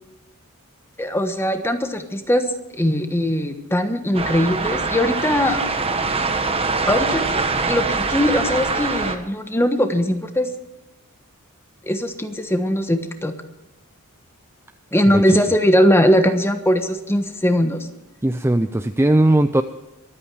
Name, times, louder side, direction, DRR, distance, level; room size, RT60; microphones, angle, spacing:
voice 1, 1.0-2.4 2.8-5.6 6.2-6.3 6.9-7.2 7.6-10.5 11.9-13.3 14.9-17.9, equal, 10° left, 7 dB, 1.3 m, -20 dB
sound 1, 4.1-9.2, right 4 dB, 25° right, 1.2 m, -23 dB
voice 2, 15.1-15.4 18.2-19.6, right 1 dB, 10° right, 9 dB, 0.4 m, -18 dB
23.5 x 8.9 x 4.8 m, 0.97 s
head